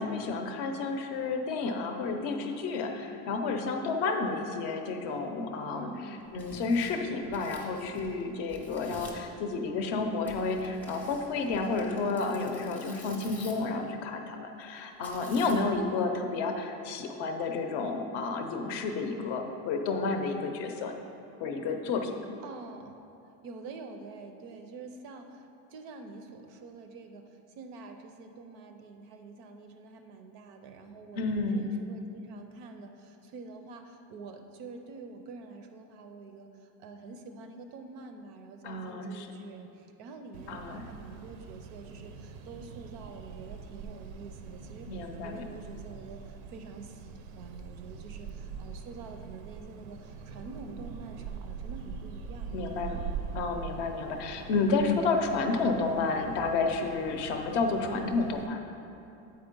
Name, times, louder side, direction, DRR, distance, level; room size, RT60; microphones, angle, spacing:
voice 1, 0.0-5.9 6.3-20.9 21.4-22.1 31.1-31.7 38.6-39.3 40.5-40.9 44.9-45.5 52.5-53.0 53.3-58.6, left 3 dB, 45° left, 5 dB, 0.6 m, -31 dB
voice 2, 5.8-6.2 22.4-23.0 23.4-27.2 27.5-52.8, right 3 dB, 45° right, 6 dB, 0.5 m, -46 dB
Tearing, 6.2-8.2 8.5-9.3 10.3-13.8 15.0-15.8, left 1 dB, 5° left, 0.6 m, -50 dB
sound 1, 40.3-58.5, right 6 dB, 90° right, 0.7 m, -43 dB
7.9 x 4.5 x 5.2 m, 2.8 s
cardioid pair, 170°, 41 cm